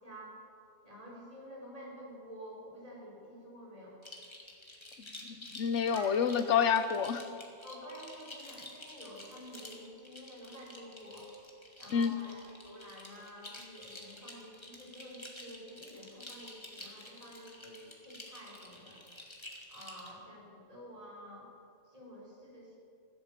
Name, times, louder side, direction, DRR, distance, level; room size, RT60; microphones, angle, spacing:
voice 1, 0.0-0.4 0.8-4.0 5.9-6.4 7.6-11.3 11.8-19.0 19.7-21.5 21.9-22.8, equal, 30° right, -6 dB, 5.2 m, -49 dB
sound 1, 4.0-20.1, left 1 dB, 25° left, 2.0 m, -50 dB
voice 2, 5.2-7.2 11.9-12.1, left 7 dB, 85° left, 11 dB, 1.2 m, -28 dB
15.5 x 12.0 x 7.4 m, 2.5 s
omnidirectional pair, 1.2 m